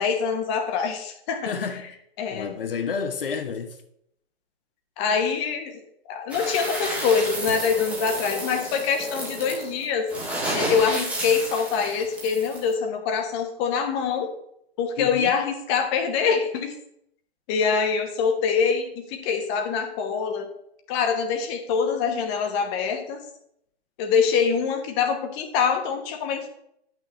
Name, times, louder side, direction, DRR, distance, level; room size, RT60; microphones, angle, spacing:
voice 1, 0.0-1.8 2.2-2.5 5.0-5.8 6.1-10.1 10.5-14.3 14.8-16.7 17.5-20.5 20.9-23.2 24.0-26.5, left 6 dB, 25° left, 1.0 m, -24 dB
voice 2, 1.5-1.9 2.3-3.8 15.0-15.3, left 6 dB, 55° left, 1.0 m, -30 dB
sound 1, 6.3-12.7, right 1 dB, 5° right, 1.3 m, -31 dB
10.5 x 6.1 x 3.2 m
figure-of-eight pair, 125°, 32 cm